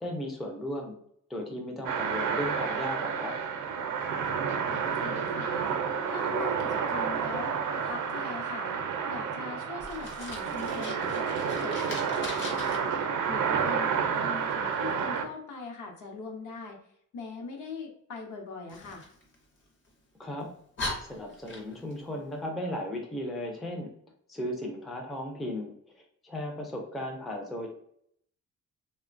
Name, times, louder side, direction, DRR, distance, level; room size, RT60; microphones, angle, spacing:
voice 1, 0.0-0.9 1.3-3.3 20.2-20.5 21.0-23.9 24.3-25.7 26.2-27.7, left 1 dB, ahead, 0 dB, 0.3 m, -35 dB
sound 1, 1.9-15.3, right 6 dB, 70° right, 0.5 m, -30 dB
voice 2, 4.7-5.6 6.1-8.7 9.1-11.3 11.6-12.9 13.3-16.8 17.1-19.1, left 3 dB, 70° left, 2 dB, 0.8 m, -41 dB
Fire, 9.8-12.8 18.7-19.9 20.4-20.5 20.8-22.0, left 2 dB, 40° left, 0.6 m, -40 dB
3.0 x 2.1 x 2.4 m, 0.68 s
wide cardioid pair, 165°, 31 cm